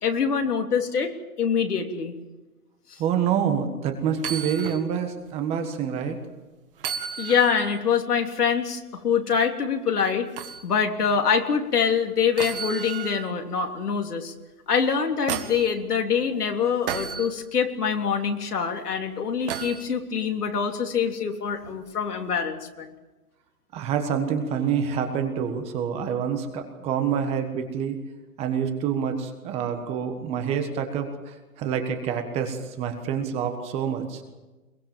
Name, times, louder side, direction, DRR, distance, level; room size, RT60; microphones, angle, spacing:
voice 1, 0.0-2.1 7.2-10.3 10.6-14.3 14.7-22.9, left 6 dB, 85° left, 4 dB, 3.5 m, -25 dB
voice 2, 3.0-6.2 23.7-28.0 28.4-34.2, right 7 dB, 15° right, 6 dB, 1.4 m, -27 dB
sound 1, 4.1-4.8 5.3-5.4 6.8-7.8 10.4-10.6 12.4-13.3 14.8-15.7 16.9-17.3 19.5-19.8 21.6-21.8, right 8 dB, 35° right, 1.9 m, -33 dB
22.5 x 22.0 x 7.4 m, 1.1 s
hypercardioid pair, 165°, 45 cm